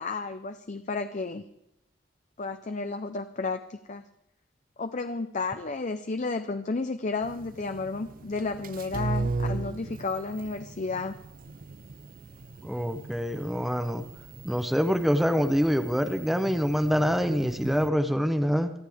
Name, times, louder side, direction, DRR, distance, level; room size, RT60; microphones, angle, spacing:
voice 1, 0.0-1.4 2.4-4.1 4.8-11.2, left 3 dB, 40° left, 8 dB, 0.6 m, -32 dB
sound 1, 7.2-17.9, right 3 dB, 50° right, 0.5 m, -37 dB
voice 2, 12.6-14.0 14.4-18.7, equal, ahead, 7 dB, 0.8 m, -25 dB
28.5 x 9.4 x 3.5 m, 0.82 s
head